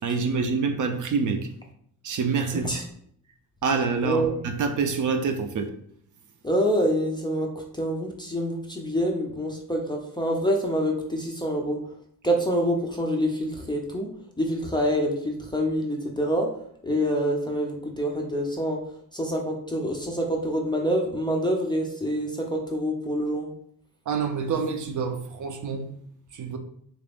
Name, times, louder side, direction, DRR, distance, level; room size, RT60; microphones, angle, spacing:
voice 1, 0.0-1.5 2.0-2.8 3.6-5.7 24.1-25.9 26.3-26.6, right 5 dB, 50° right, 0.4 m, -26 dB
voice 2, 4.0-4.4 6.4-7.5 7.8-11.8 12.2-14.1 14.4-16.5 16.8-18.8 19.1-23.5, equal, 10° left, 0.4 m, -26 dB
3.6 x 2.5 x 3.4 m
wide cardioid pair, 145°, 39 cm